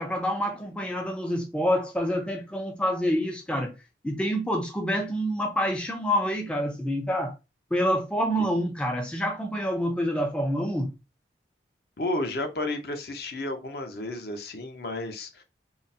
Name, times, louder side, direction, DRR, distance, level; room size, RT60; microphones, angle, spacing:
voice 1, 0.0-3.7 4.0-7.3 7.7-10.9, equal, 5° left, 0.4 m, -27 dB
voice 2, 12.0-15.4, left 2 dB, 60° left, 0.6 m, -32 dB
3.7 x 2.0 x 2.6 m
head